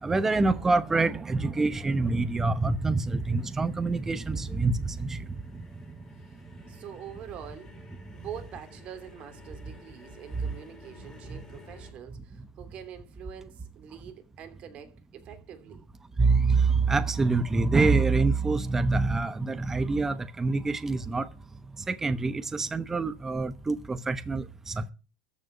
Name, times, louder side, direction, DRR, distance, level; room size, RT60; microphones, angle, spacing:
voice 1, 0.0-5.7 10.4-10.5 11.3-11.4 16.2-21.3 21.9-24.9, right 3 dB, 10° right, 0.9 m, -26 dB
sound 1, 2.0-11.9, left 3 dB, 15° left, 4.0 m, -53 dB
voice 2, 6.7-7.7 8.1-15.8, right 8 dB, 35° right, 3.1 m, -45 dB
14.0 x 6.3 x 8.2 m
supercardioid pair, 145°, 3 cm